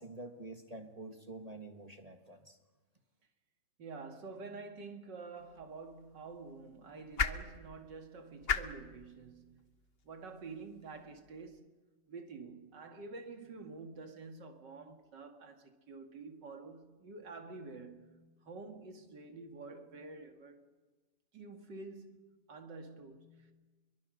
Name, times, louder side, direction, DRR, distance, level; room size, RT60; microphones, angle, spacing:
voice 1, 0.0-2.6, right 2 dB, 20° right, 1.5 m, -47 dB
voice 2, 3.8-9.6 10.0-11.7 12.1-18.1 18.4-20.6 21.3-22.2 22.5-23.5, right 4 dB, 75° right, 2.8 m, -48 dB
sound 1, 5.4-11.6, left 5 dB, 40° left, 1.0 m, -41 dB
25.0 x 23.0 x 6.4 m
omnidirectional pair, 1.9 m